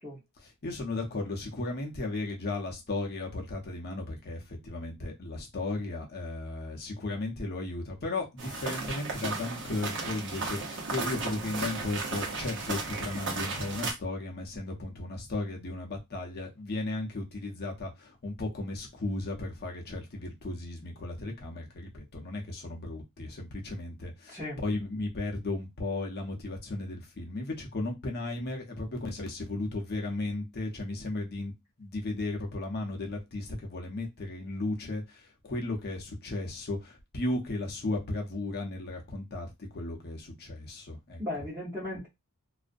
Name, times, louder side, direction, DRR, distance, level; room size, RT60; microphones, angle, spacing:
voice 1, 0.4-31.5 31.8-41.5, left 2 dB, 45° left, 0.6 m, -35 dB
sound 1, 8.4-13.9, right 3 dB, 55° right, 0.7 m, -35 dB
voice 2, 24.3-24.6 41.2-42.1, left 1 dB, 10° right, 0.8 m, -36 dB
2.4 x 2.1 x 2.5 m
head